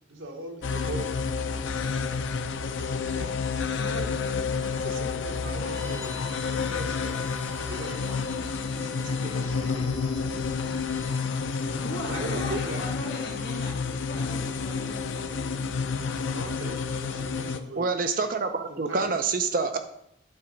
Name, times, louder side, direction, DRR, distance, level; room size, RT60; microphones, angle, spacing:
voice 1, 0.1-1.1 3.1-3.4 3.7-4.2 4.7-6.2 6.5-7.4 7.7-8.2 8.7-10.2 12.0-12.8 16.3-17.9 18.7-19.1, right 1 dB, 85° right, 3 dB, 1.2 m, -39 dB
sound 1, 0.6-17.6, left 5 dB, 80° left, 0.5 m, -30 dB
Bowed string instrument, 5.6-11.3, equal, 65° right, 2.9 m, -46 dB
voice 2, 11.8-15.3, left 1 dB, 55° left, -3 dB, 2.3 m, -39 dB
voice 3, 17.8-19.8, right 4 dB, 45° right, 8 dB, 0.5 m, -27 dB
8.6 x 4.0 x 5.1 m, 0.75 s
head